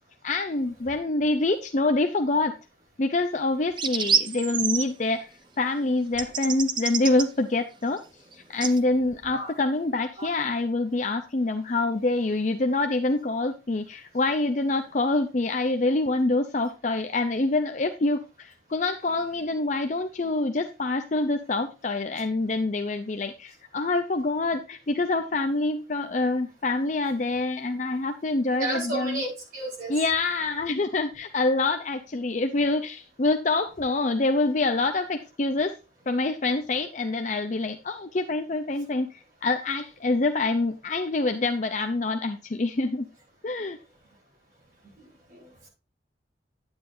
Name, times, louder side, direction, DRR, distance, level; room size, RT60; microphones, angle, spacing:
voice 1, 0.2-2.5 3.0-5.3 5.6-8.0 8.3-29.2 29.9-35.7 36.1-43.1 43.4-43.8, left 2 dB, 40° left, 7 dB, 0.5 m, -26 dB
sound 1, 3.8-4.8 6.2-7.3 8.6-8.8, right 6 dB, 25° right, 0.6 m, -26 dB
voice 2, 9.2-9.5 10.1-10.3 28.6-30.0 45.0-45.7, right 2 dB, 50° right, -3 dB, 4.8 m, -34 dB
9.7 x 9.3 x 2.7 m, 0.30 s
head